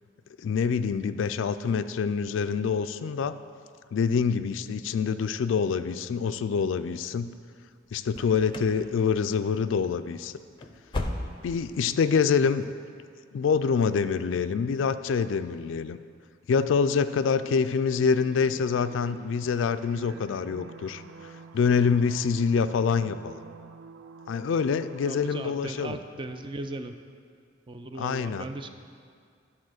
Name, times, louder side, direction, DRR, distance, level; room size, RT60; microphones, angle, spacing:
voice 1, 0.4-3.4 3.9-7.3 7.9-10.3 11.4-12.7 13.3-16.0 16.5-21.0 21.5-23.4 24.3-26.0 28.0-28.5, left 6 dB, 70° left, 12 dB, 0.3 m, -26 dB
sound 1, 8.1-8.8 9.1-9.5 9.8-10.0 10.4-11.7 12.0-12.1 12.6-12.7, left 1 dB, 25° left, 0.6 m, -35 dB
sound 2, 16.3-25.3, right 5 dB, 85° right, 0.4 m, -49 dB
voice 2, 25.0-26.9 27.7-28.7, right 2 dB, 25° right, 7 dB, 0.4 m, -37 dB
11.0 x 4.2 x 6.4 m, 2.2 s
head